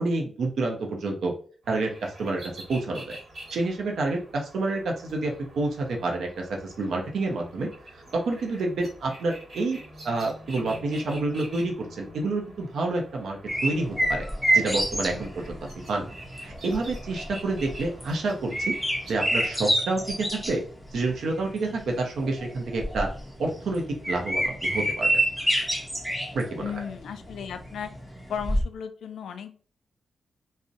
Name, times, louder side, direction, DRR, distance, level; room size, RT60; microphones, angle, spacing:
voice 1, 0.0-1.3 1.7-2.4 2.7-3.2 3.5-7.7 7.9-9.8 10.0-14.3 14.5-15.5 15.9-16.1 16.4-18.7 19.1-20.1 20.4-20.6 20.9-23.1 23.4-25.2 26.3-26.6, right 2 dB, 75° right, 1 dB, 0.5 m, -28 dB
sound 1, 1.6-19.1, equal, 50° right, 1.2 m, -46 dB
sound 2, 13.5-28.6, right 1 dB, ahead, 0.5 m, -28 dB
voice 2, 26.6-27.9 28.3-29.6, left 7 dB, 85° left, 8 dB, 0.3 m, -35 dB
2.6 x 2.0 x 2.5 m, 0.41 s
wide cardioid pair, 150°, 0 cm